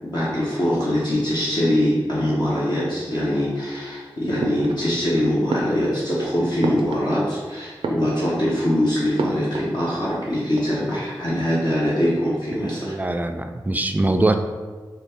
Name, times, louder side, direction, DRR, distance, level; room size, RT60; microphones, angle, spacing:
voice 1, 0.0-12.9, equal, 50° left, -8 dB, 1.0 m, -23 dB
sound 1, 4.4-5.1 5.5-7.4 7.7-8.6 9.2-9.8 10.0-10.1 10.4-11.1, right 2 dB, 85° right, 0.4 m, -29 dB
voice 2, 12.5-14.3, right 2 dB, 20° right, 6 dB, 0.3 m, -23 dB
3.9 x 2.3 x 3.5 m, 1.4 s
cardioid pair, 40°, 9 cm